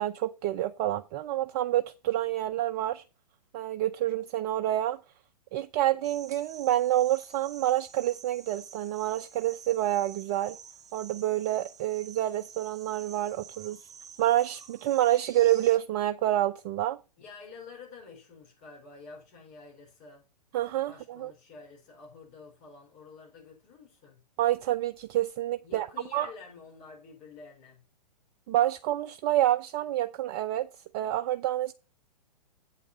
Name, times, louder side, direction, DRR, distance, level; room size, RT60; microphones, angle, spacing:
voice 1, 0.0-3.0 3.5-5.0 5.5-10.6 10.9-13.8 14.2-17.0 20.5-21.3 24.4-25.9 26.1-26.3 28.5-30.7 30.9-31.7, right 14 dB, 35° right, 0.5 m, -28 dB
sound 1, 6.0-15.8, right 7 dB, 15° right, 1.1 m, -50 dB
voice 2, 17.2-20.2 20.9-24.2 25.6-27.8, left 4 dB, 35° left, 4.7 m, -49 dB
8.5 x 8.3 x 4.2 m
figure-of-eight pair, 115°, 21 cm